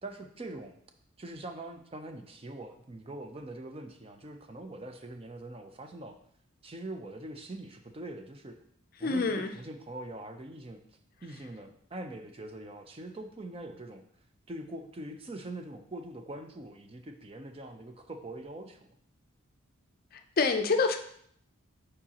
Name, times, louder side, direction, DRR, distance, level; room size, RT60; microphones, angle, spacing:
voice 1, 0.0-0.7 1.2-6.2 6.6-8.6 9.0-10.8 11.2-14.0 14.5-18.8, right 1 dB, 25° right, 6 dB, 0.4 m, -43 dB
voice 2, 9.0-9.5 20.1-21.0, left 4 dB, 45° left, 6 dB, 0.5 m, -27 dB
7.2 x 4.8 x 2.9 m, 0.66 s
head